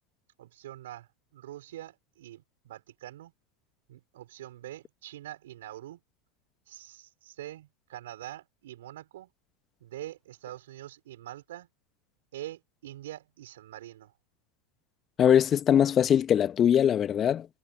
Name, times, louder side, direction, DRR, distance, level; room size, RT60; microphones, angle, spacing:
voice 1, 0.4-3.3 3.9-6.0 6.7-9.3 9.8-11.7 12.3-14.1, right 13 dB, 75° right, 4.1 m, -44 dB
voice 2, 15.2-17.5, left 9 dB, 35° left, 1.1 m, -22 dB
hypercardioid pair, 95°, 0 cm